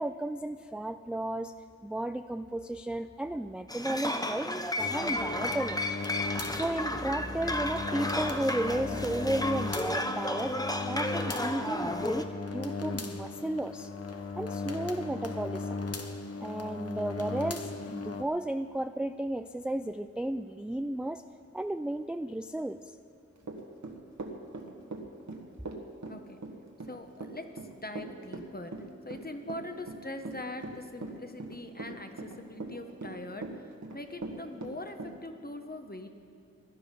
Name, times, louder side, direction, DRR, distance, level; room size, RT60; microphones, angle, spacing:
voice 1, 0.0-1.5 1.8-4.5 4.8-5.8 6.5-10.6 10.9-13.9 14.4-15.8 16.4-21.2 21.5-23.0, right 1 dB, 5° right, 10 dB, 0.3 m, -33 dB
sound 1, 3.7-12.2, left 1 dB, 15° left, 0.8 m, -33 dB
sound 2, 4.8-18.2, left 3 dB, 55° left, 0.8 m, -37 dB
Run / Walk footsteps, 23.4-35.2, right 3 dB, 70° right, 1.5 m, -40 dB
voice 2, 26.9-28.7 29.0-33.6 33.9-36.1, left 2 dB, 30° left, 6 dB, 1.1 m, -42 dB
16.5 x 12.0 x 5.3 m, 2.5 s
wide cardioid pair, 60°, 30 cm